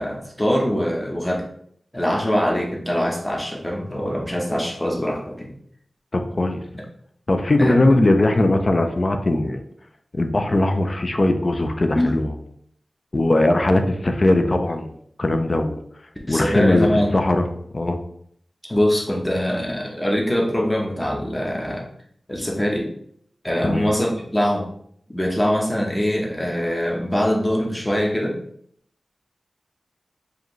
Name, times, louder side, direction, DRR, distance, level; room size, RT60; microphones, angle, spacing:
voice 1, 0.0-1.4 1.9-5.5 7.6-7.9 11.9-12.1 16.3-17.2 18.7-21.9 22.3-22.9 23.4-24.7 25.1-28.4, equal, 15° left, -1 dB, 0.9 m, -23 dB
voice 2, 6.1-6.6 7.3-9.6 10.1-12.3 13.1-14.9 15.2-15.8 16.3-17.5 17.7-18.0 23.6-23.8, left 1 dB, 45° left, 6 dB, 0.5 m, -19 dB
4.9 x 2.6 x 3.1 m, 0.66 s
wide cardioid pair, 60°, 0 cm